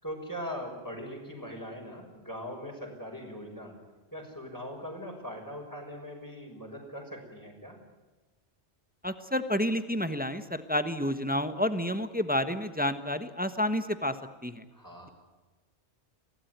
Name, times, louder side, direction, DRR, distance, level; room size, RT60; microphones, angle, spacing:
voice 1, 0.0-3.8 4.1-7.8 14.7-15.1, equal, 15° left, -1 dB, 5.9 m, -41 dB
voice 2, 9.0-14.2 14.4-14.6, left 1 dB, 10° right, 10 dB, 1.1 m, -30 dB
24.5 x 17.5 x 9.3 m, 1.2 s
omnidirectional pair, 1.2 m